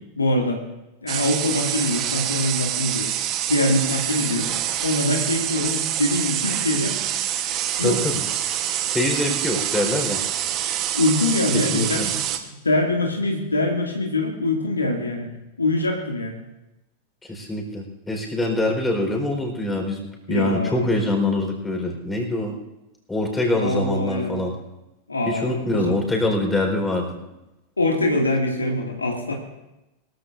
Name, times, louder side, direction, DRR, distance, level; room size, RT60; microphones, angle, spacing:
voice 1, 0.2-0.6 1.0-3.1 3.5-4.5 4.8-7.0 7.8-8.0 10.9-12.2 12.6-15.3 15.6-16.4 20.3-20.9 23.6-24.4 25.1-26.0 27.8-29.3, left 1 dB, 80° left, 0 dB, 2.2 m, -23 dB
sound 1, 1.1-12.4, right 11 dB, 35° right, 1.1 m, -26 dB
voice 2, 7.8-8.2 8.5-8.6 8.9-10.2 11.5-12.1 17.3-22.6 23.1-24.5 25.3-27.2, left 2 dB, 10° left, 1 dB, 4.2 m, -24 dB
22.5 x 14.5 x 2.6 m, 0.96 s
figure-of-eight pair, 90°, 0 cm